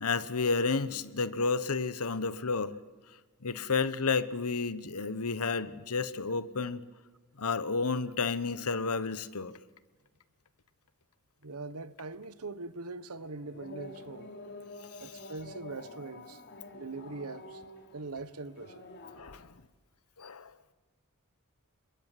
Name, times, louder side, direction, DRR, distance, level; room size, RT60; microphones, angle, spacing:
voice 1, 0.0-2.8 3.4-6.8 7.4-9.5 15.0-15.1 19.1-19.5 20.2-20.5, left 4 dB, 80° left, 1.1 m, -31 dB
voice 2, 11.4-14.3 15.0-16.4 16.7-17.6 17.9-18.9, right 3 dB, 75° right, 1.2 m, -42 dB
sound 1, 13.2-19.3, left 2 dB, 50° left, 3.9 m, -48 dB
27.5 x 22.0 x 9.2 m
head